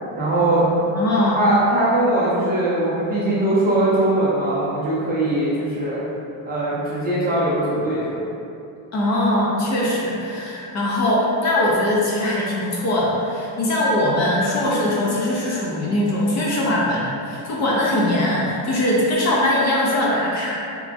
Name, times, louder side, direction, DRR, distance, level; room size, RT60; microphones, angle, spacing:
voice 1, 0.1-0.6 1.3-6.0 6.4-8.2, right 1 dB, 20° right, -9 dB, 0.4 m, -20 dB
voice 2, 0.9-1.4 8.9-20.5, left 1 dB, 40° left, -5 dB, 0.5 m, -21 dB
3.5 x 2.9 x 2.5 m, 2.7 s
cardioid pair, 170°, 44 cm